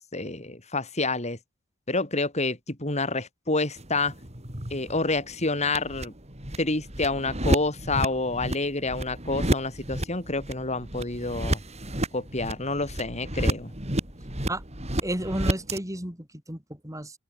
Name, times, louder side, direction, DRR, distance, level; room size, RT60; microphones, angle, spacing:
voice 1, 0.1-1.4 1.9-4.1 4.7-6.1 6.6-11.6 12.1-13.7, left 3 dB, 35° left, 4.9 m, -28 dB
sound 1, 3.8-15.8, right 1 dB, 30° right, 5.4 m, -31 dB
voice 2, 15.0-16.6 16.8-17.1, right 1 dB, 15° right, 5.6 m, -32 dB
open air
head